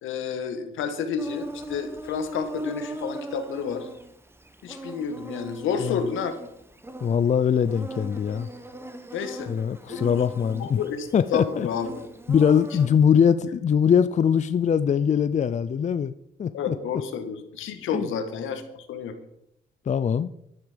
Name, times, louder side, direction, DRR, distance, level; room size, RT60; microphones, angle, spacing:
voice 1, 0.0-3.9 4.6-6.3 9.1-9.5 9.9-10.0 10.6-12.0 16.5-19.1, left 6 dB, 85° left, 8 dB, 1.7 m, -30 dB
Insect, 1.2-12.9, right 2 dB, 10° right, 1.4 m, -40 dB
voice 2, 7.0-8.5 9.5-10.8 11.1-11.7 12.3-16.1 16.4-16.8 17.9-18.1 19.9-20.3, left 7 dB, 35° left, 13 dB, 0.5 m, -22 dB
12.0 x 9.6 x 5.2 m, 0.79 s
cardioid pair, 90°, 20 cm